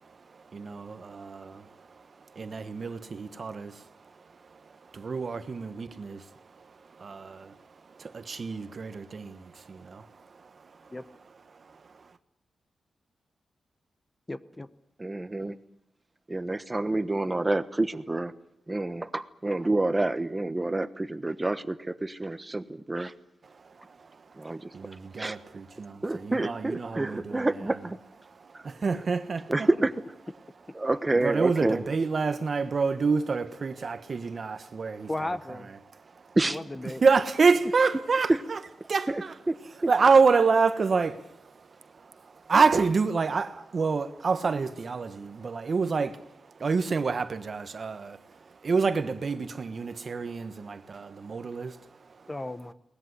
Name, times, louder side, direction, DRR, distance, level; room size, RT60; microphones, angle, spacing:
voice 1, 0.3-2.0 2.3-3.9 4.5-7.6 7.9-10.9 11.5-12.1 23.5-24.2 24.7-27.5 28.2-29.7 31.2-35.6 35.9-36.4 37.0-38.6 38.9-39.3 39.9-51.9 52.2-52.3, right 4 dB, 45° right, 1.3 m, -28 dB
voice 2, 14.3-14.7 35.1-35.7 36.4-37.0 52.3-52.7, left 2 dB, 15° left, 1.0 m, -35 dB
voice 3, 15.0-15.6 16.3-18.3 18.7-23.1 24.4-24.7 25.2-25.4 26.0-28.0 28.5-28.6 29.5-29.9 30.7-31.8 36.3-36.6 38.3-38.4 39.1-39.2 39.5-39.6 39.8-39.9, right 2 dB, 20° right, 1.2 m, -28 dB
22.0 x 19.5 x 9.8 m
wide cardioid pair, 120°, 0 cm